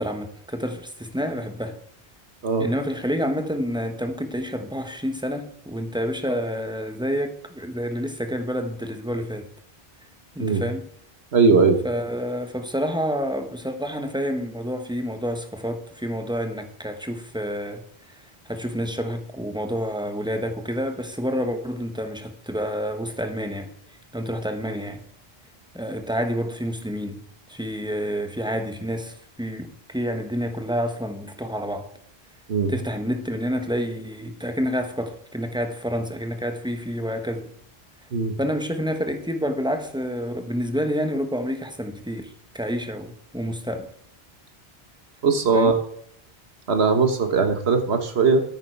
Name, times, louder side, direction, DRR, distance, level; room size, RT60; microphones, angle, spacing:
voice 1, 0.0-1.8 2.6-9.5 10.3-10.8 11.8-17.8 18.5-23.7 24.1-25.0 25.7-27.2 27.5-31.9 32.7-37.5 38.4-43.9 45.5-45.8, equal, 5° right, 1.1 m, -28 dB
voice 2, 11.3-11.8 32.5-32.7 38.1-38.3 45.2-45.7 46.7-48.4, right 4 dB, 85° right, 1.6 m, -19 dB
9.5 x 9.2 x 4.6 m
omnidirectional pair, 1.1 m